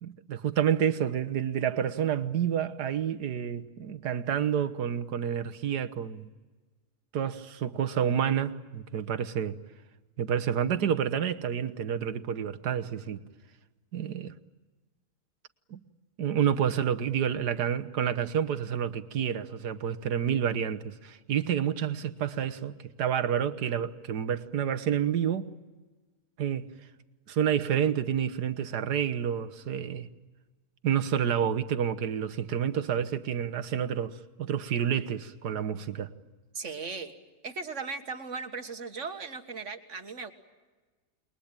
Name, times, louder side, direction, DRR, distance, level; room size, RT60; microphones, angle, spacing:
voice 1, 0.0-6.3 7.1-9.6 10.2-13.2 13.9-14.3 15.7-15.8 16.2-25.5 26.4-26.7 27.3-30.1 30.8-36.1, right 8 dB, 85° right, 1.7 m, -29 dB
voice 2, 36.5-37.1 37.4-40.3, right 4 dB, 50° right, 2.1 m, -37 dB
29.0 x 22.0 x 8.9 m
omnidirectional pair, 1.7 m